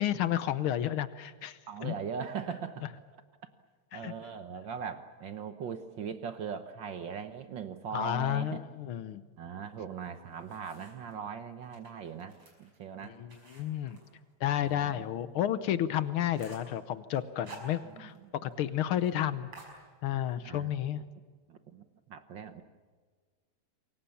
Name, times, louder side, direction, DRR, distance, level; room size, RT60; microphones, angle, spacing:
voice 1, 0.0-1.9 3.9-4.1 7.9-9.2 13.0-14.0 14.4-18.1 18.4-19.5 20.0-21.0, left 11 dB, 75° left, 13 dB, 1.2 m, -31 dB
voice 2, 1.7-2.8 3.9-8.6 9.4-13.2 14.6-15.0 17.8-18.3 20.4-20.7 21.5-21.8 22.1-22.6, right 7 dB, 75° right, 10 dB, 1.1 m, -40 dB
sound 1, 10.0-11.2 11.6-14.9 15.2-15.3 15.7-15.8 16.1-16.8 17.2-18.3 18.5-18.6 18.9-19.1 19.5-20.4, right 3 dB, 45° right, 6.5 m, -53 dB
27.5 x 23.5 x 7.1 m, 1.5 s
omnidirectional pair, 3.5 m